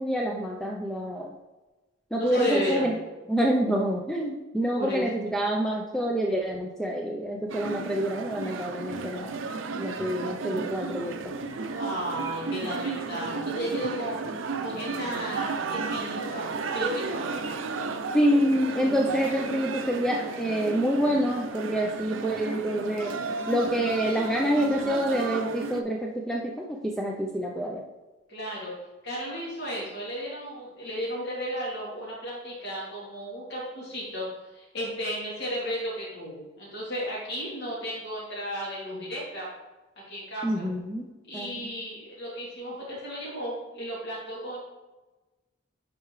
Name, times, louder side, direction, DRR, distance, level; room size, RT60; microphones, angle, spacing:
voice 1, 0.0-1.3 2.1-3.0 3.3-9.4 9.7-11.1 18.1-23.1 23.5-27.8 40.4-41.0 41.3-41.7, equal, ahead, -1 dB, 0.5 m, -27 dB
voice 2, 2.2-2.9 4.8-5.0 11.7-14.2 14.6-16.5 16.7-17.2 28.3-28.8 29.0-39.5 40.1-40.6 41.2-44.6, equal, 55° left, -6 dB, 2.6 m, -33 dB
sound 1, 7.5-25.8, right 4 dB, 75° right, 0.6 m, -33 dB
10.0 x 4.8 x 3.2 m, 1.1 s
head